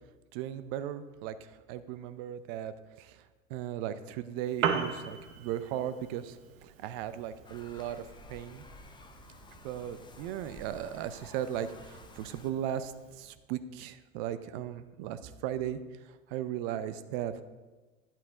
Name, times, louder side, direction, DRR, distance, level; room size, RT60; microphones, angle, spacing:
voice 1, 0.3-8.0 8.3-8.6 9.6-17.5, right 10 dB, 45° right, 12 dB, 0.7 m, -37 dB
Piano, 4.4-13.4, right 7 dB, 70° right, 1.0 m, -40 dB
sound 1, 7.4-12.5, left 2 dB, 10° left, 0.6 m, -52 dB
11.0 x 5.8 x 3.5 m, 1.2 s
hypercardioid pair, 90°, 40 cm